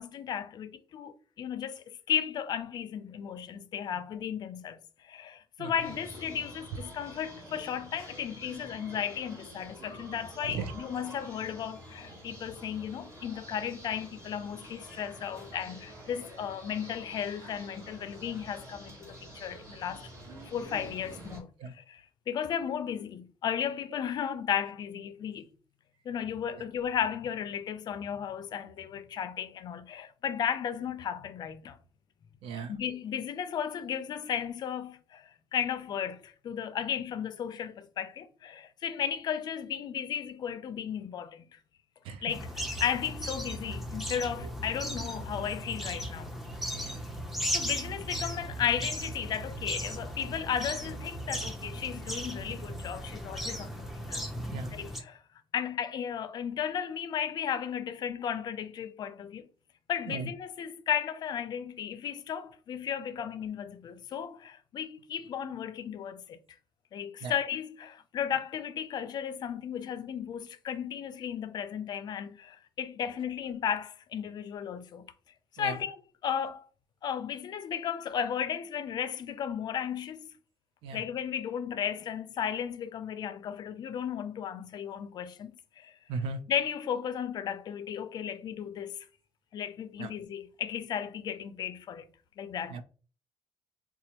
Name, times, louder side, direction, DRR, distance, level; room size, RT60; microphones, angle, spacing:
voice 1, 0.0-20.1 20.4-25.5 26.0-31.8 32.7-41.6 42.2-42.5 42.8-46.4 47.5-54.2 54.7-55.2 55.5-59.5 59.9-66.4 66.9-75.1 75.5-75.9 76.2-76.6 77.0-80.3 80.9-85.9 86.5-89.1 89.5-92.1 92.4-92.8, left 8 dB, 50° left, 0.4 m, -35 dB
sound 1, 5.8-21.4, right 1 dB, 30° right, 1.3 m, -48 dB
voice 2, 10.4-10.7 21.6-21.7 26.5-26.6 32.4-32.8 42.0-42.2 44.4-44.5 46.7-47.1 54.5-54.7 60.1-60.3 67.2-67.3 75.6-75.8 80.8-81.0 86.1-86.4 90.0-90.1 92.7-92.8, right 4 dB, 85° right, 0.5 m, -37 dB
sound 2, 42.3-55.0, equal, 5° right, 0.6 m, -37 dB
4.1 x 2.3 x 2.9 m
cardioid pair, 135°, 9 cm